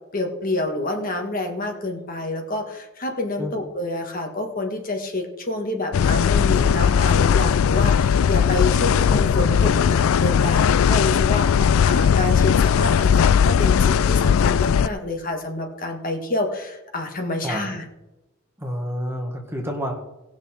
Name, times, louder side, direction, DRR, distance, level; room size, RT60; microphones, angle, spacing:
voice 1, 0.1-17.8, left 2 dB, 40° left, 3 dB, 1.6 m, -28 dB
sound 1, 5.9-14.9, left 7 dB, 75° left, 0.3 m, -18 dB
voice 2, 18.6-19.9, equal, 10° right, 1 dB, 1.6 m, -28 dB
18.5 x 6.3 x 4.3 m, 0.99 s
head